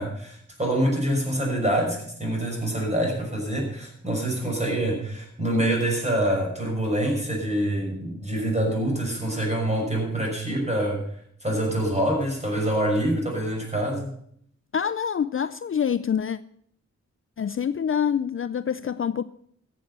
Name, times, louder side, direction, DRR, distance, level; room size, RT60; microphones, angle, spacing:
voice 1, 0.0-11.0 11.4-14.1, right 1 dB, 25° right, 6.0 m, -26 dB
voice 2, 14.7-16.4 17.4-19.2, left 8 dB, 45° left, 0.5 m, -26 dB
14.5 x 8.0 x 6.7 m
wide cardioid pair, 80°, 29 cm